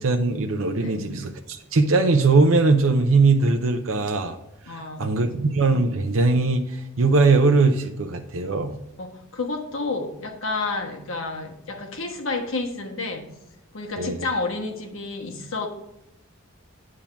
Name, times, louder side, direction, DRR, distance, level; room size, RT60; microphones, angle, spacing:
voice 1, 0.0-4.4 4.7-8.8 14.0-14.3, right 3 dB, 75° right, 4 dB, 0.7 m, -20 dB
voice 2, 0.8-1.1 4.6-5.3 9.0-13.3 13.7-15.7, left 3 dB, 75° left, 2 dB, 1.4 m, -30 dB
8.6 x 3.8 x 5.7 m, 0.86 s
head